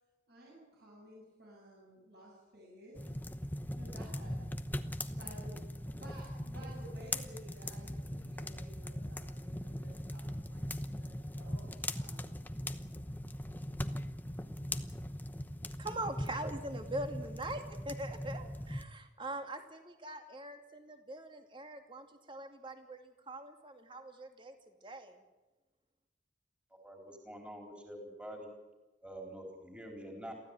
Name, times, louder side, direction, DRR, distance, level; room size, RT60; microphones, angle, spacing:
voice 1, 0.3-3.1 3.8-4.5 5.1-12.3, right 1 dB, 60° right, -3 dB, 7.3 m, -54 dB
sound 1, 2.9-18.8, left 1 dB, 10° left, 0.9 m, -40 dB
voice 2, 15.8-25.2, right 1 dB, 25° right, 5 dB, 2.4 m, -43 dB
voice 3, 26.8-28.5 29.0-30.3, equal, 5° right, 1 dB, 4.2 m, -46 dB
23.5 x 15.5 x 9.1 m, 1.1 s
head